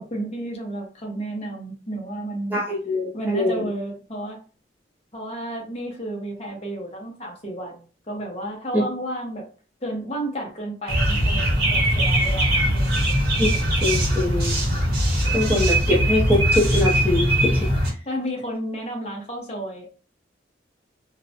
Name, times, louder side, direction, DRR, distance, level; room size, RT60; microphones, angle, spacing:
voice 1, 0.0-2.6 3.1-4.4 5.1-9.5 9.8-13.0 18.1-19.9, right 1 dB, 35° left, 0 dB, 0.9 m, -32 dB
voice 2, 2.5-3.7 8.7-8.8 13.4-13.5 13.8-14.5 15.3-17.7, left 1 dB, 10° right, -6 dB, 0.6 m, -23 dB
sound 1, 10.9-17.9, right 1 dB, 55° right, 0.9 m, -21 dB
2.5 x 2.1 x 2.7 m, 0.37 s
head